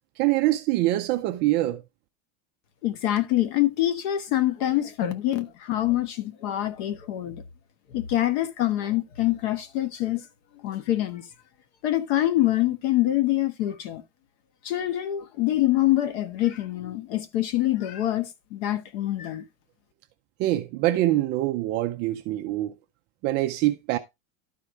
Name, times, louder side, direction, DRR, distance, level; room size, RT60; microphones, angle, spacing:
voice 1, 0.2-1.8 20.4-22.7 23.2-24.0, right 16 dB, 25° right, 0.5 m, -24 dB
voice 2, 2.8-7.4 7.9-10.2 10.6-11.3 11.8-14.0 14.6-19.4, left 14 dB, 50° left, 1.4 m, -25 dB
12.0 x 4.8 x 3.8 m
supercardioid pair, 165°, 40 cm